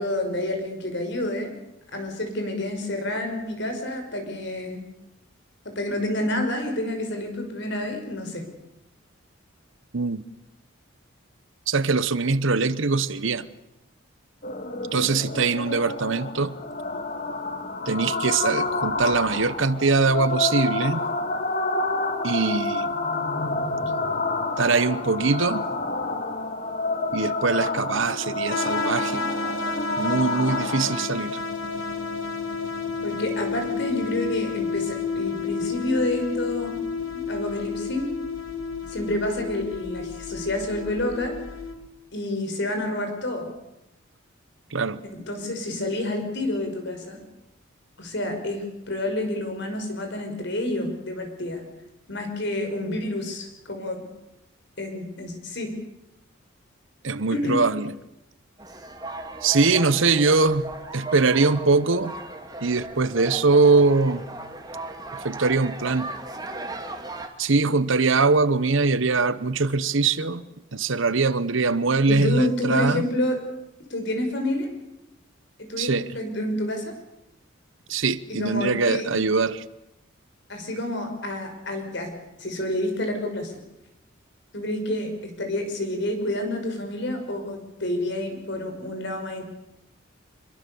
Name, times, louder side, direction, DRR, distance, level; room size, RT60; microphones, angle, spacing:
voice 1, 0.0-1.5 1.9-4.8 5.7-8.5 33.0-36.8 37.3-38.1 38.9-41.4 42.1-43.5 45.1-47.2 48.0-51.6 52.1-54.1 54.8-55.8 57.3-57.6 72.1-73.4 73.9-74.7 75.6-76.9 78.3-79.1 80.5-82.1 82.4-83.6 84.5-89.4, left 1 dB, 55° left, 5.6 m, -29 dB
voice 2, 9.9-10.2 11.7-13.5 14.9-16.6 17.9-21.0 22.2-23.0 24.6-25.6 27.1-29.2 30.0-31.4 44.7-45.0 57.0-57.9 59.4-62.1 62.6-64.2 65.2-66.1 67.4-70.4 70.7-73.0 75.8-76.1 77.9-79.6, right 4 dB, 65° right, 1.0 m, -22 dB
sound 1, 14.4-31.0, left 3 dB, 40° left, 2.1 m, -29 dB
sound 2, 28.5-41.7, left 4 dB, 80° left, 3.0 m, -30 dB
sound 3, 58.6-67.3, right 2 dB, 20° right, 2.3 m, -37 dB
26.0 x 22.0 x 7.1 m
head